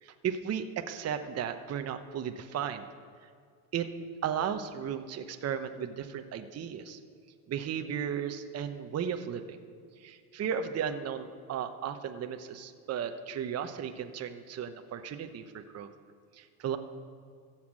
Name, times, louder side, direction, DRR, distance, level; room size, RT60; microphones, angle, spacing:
voice 1, 0.0-2.8 3.2-3.3 3.7-3.9 4.2-7.0 7.5-9.6 10.0-15.9 16.3-16.8, right 8 dB, 35° right, 7 dB, 0.9 m, -35 dB
14.5 x 5.9 x 8.7 m, 2.2 s
supercardioid pair, 95°, 45 cm